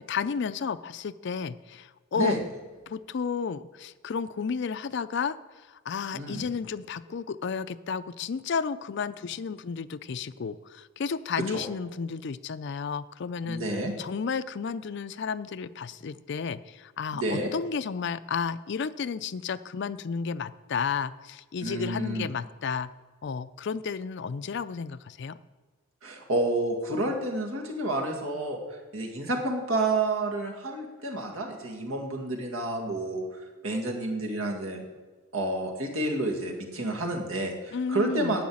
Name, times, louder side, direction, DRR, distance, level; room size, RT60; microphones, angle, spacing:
voice 1, 0.1-2.4 2.9-5.4 5.7-13.6 14.0-22.9 23.2-25.4 37.7-38.4, left 6 dB, 55° left, 15 dB, 0.4 m, -32 dB
voice 2, 6.1-6.5 11.5-11.6 13.4-13.9 17.1-17.5 21.6-22.3 26.0-33.3 33.6-34.8 35.3-38.4, right 2 dB, 80° right, 1 dB, 2.1 m, -30 dB
10.5 x 6.6 x 8.6 m, 1.3 s
head